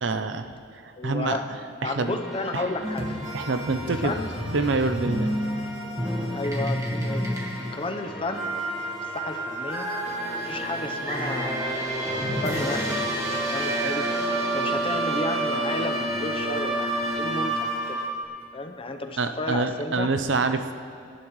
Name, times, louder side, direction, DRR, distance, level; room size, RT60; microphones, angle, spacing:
voice 1, 0.0-0.5 1.0-1.4 1.8-2.1 2.5-2.7 3.3-4.1 4.5-5.3 19.2-20.7, right 3 dB, 65° right, 8 dB, 0.7 m, -26 dB
voice 2, 1.0-1.5 1.8-3.2 3.8-4.4 4.9-5.0 6.3-8.6 9.0-9.9 10.4-11.8 12.4-13.1 13.5-14.1 14.5-18.0 18.5-20.1, left 2 dB, 30° left, 5 dB, 0.8 m, -32 dB
sound 1, 2.1-18.1, left 1 dB, ahead, 2.2 m, -42 dB
sound 2, 2.8-18.2, right 1 dB, 15° right, 1.7 m, -29 dB
24.0 x 11.0 x 3.2 m, 2.4 s
head